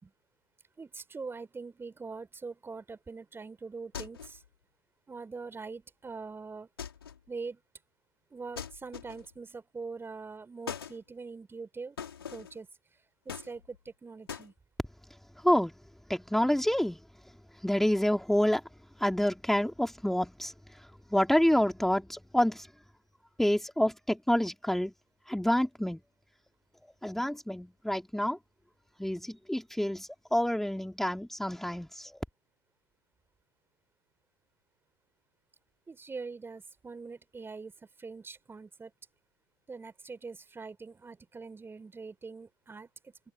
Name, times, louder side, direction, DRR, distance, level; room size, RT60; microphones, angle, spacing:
voice 1, 0.8-4.4 5.1-6.7 7.3-7.6 8.3-12.0 12.3-12.7 13.3-14.5 35.9-37.7 38.0-38.9 39.7-43.3, right 4 dB, 20° right, 3.9 m, -43 dB
sound 1, 3.9-4.5 6.8-7.3 8.6-9.4 10.7-11.0 12.0-12.6 13.3-13.9 14.3-14.5, left 7 dB, 80° left, 3.3 m, -42 dB
voice 2, 15.4-15.7 16.1-17.0 17.5-18.6 19.0-22.7 23.4-24.9 25.3-26.0 27.0-28.4 29.0-32.2, left 1 dB, 5° left, 2.7 m, -28 dB
figure-of-eight pair, 75°, 12 cm